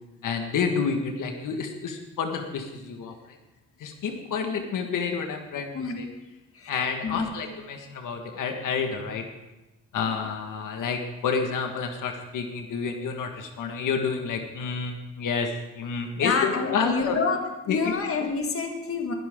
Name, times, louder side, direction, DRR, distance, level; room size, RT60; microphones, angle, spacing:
voice 1, 0.2-3.4 3.8-6.1 6.7-9.2 9.9-15.5 15.7-17.2 17.7-17.9, left 5 dB, 80° left, 4 dB, 1.7 m, -29 dB
voice 2, 16.2-17.4 17.7-19.1, left 5 dB, 45° left, 3 dB, 1.8 m, -27 dB
21.0 x 12.0 x 3.8 m, 1.0 s
wide cardioid pair, 160°, 31 cm